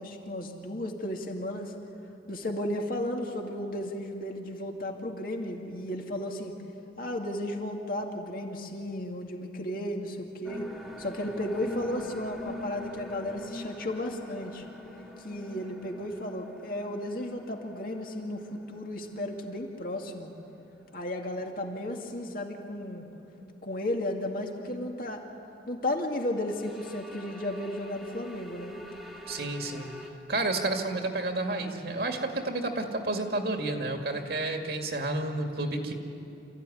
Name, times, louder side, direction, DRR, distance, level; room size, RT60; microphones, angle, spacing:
voice 1, 0.0-1.7 2.3-6.5 7.0-10.7 11.0-14.7 15.2-20.3 20.9-23.1 23.6-25.2 25.7-28.8, left 1 dB, 50° left, 2 dB, 2.3 m, -34 dB
sound 1, 10.4-20.2 20.5-20.6 26.5-30.1, left 1 dB, ahead, 1.9 m, -44 dB
voice 2, 29.3-29.9 30.3-35.9, right 2 dB, 60° right, 3 dB, 2.2 m, -30 dB
27.5 x 15.0 x 9.9 m, 2.8 s
head